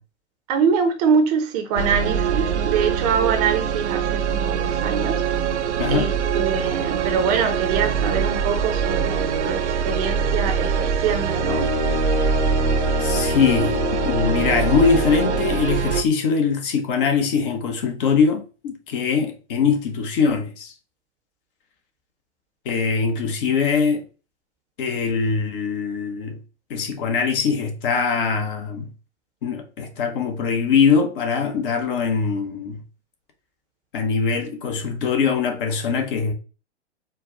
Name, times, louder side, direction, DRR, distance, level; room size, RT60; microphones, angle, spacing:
voice 1, 0.5-5.2 5.9-6.1 6.4-11.7, right 6 dB, 35° right, 0.7 m, -24 dB
sound 1, 1.8-16.0, right 7 dB, 75° right, 0.5 m, -23 dB
sound 2, 11.4-15.6, left 6 dB, 15° left, 0.5 m, -27 dB
voice 2, 13.0-20.7 22.6-24.0 24.8-26.4 26.7-28.9 29.4-32.8 33.9-36.3, left 5 dB, 50° left, 1.0 m, -22 dB
4.4 x 2.3 x 3.8 m
figure-of-eight pair, 105°, 35 cm